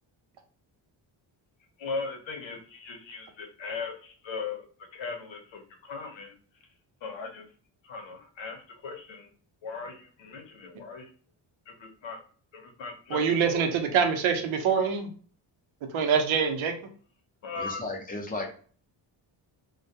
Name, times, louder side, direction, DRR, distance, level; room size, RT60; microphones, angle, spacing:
voice 1, 1.8-4.7 4.9-6.3 7.0-7.5 7.8-9.3 9.6-11.1 11.7-12.2 12.5-13.7 17.4-17.8, left 4 dB, 70° left, 4 dB, 0.8 m, -38 dB
voice 2, 13.1-15.1 15.9-16.7, right 6 dB, 80° right, 5 dB, 0.7 m, -25 dB
voice 3, 17.8-18.5, left 2 dB, 20° left, 2 dB, 0.7 m, -33 dB
2.2 x 2.2 x 2.7 m, 0.44 s
cardioid pair, 95°, 47 cm